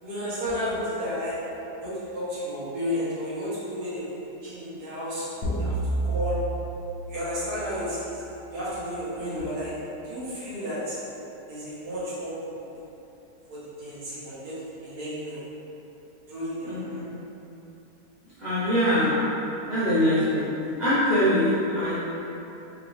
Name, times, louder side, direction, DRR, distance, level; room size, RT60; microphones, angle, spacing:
voice 1, 0.0-1.3 1.8-5.2 5.6-5.7 6.0-6.4 7.1-8.1 8.5-9.7 10.0-11.0 11.5-12.6 13.5-15.4 16.3-17.0, equal, 70° right, -11 dB, 1.7 m, -32 dB
sound 1, 5.4-7.9, right 2 dB, 90° left, 1.3 m, -30 dB
voice 2, 16.7-17.2 18.4-19.3 19.7-22.0, left 1 dB, 35° right, -14 dB, 0.7 m, -24 dB
4.5 x 2.9 x 2.6 m, 3.0 s
omnidirectional pair, 1.8 m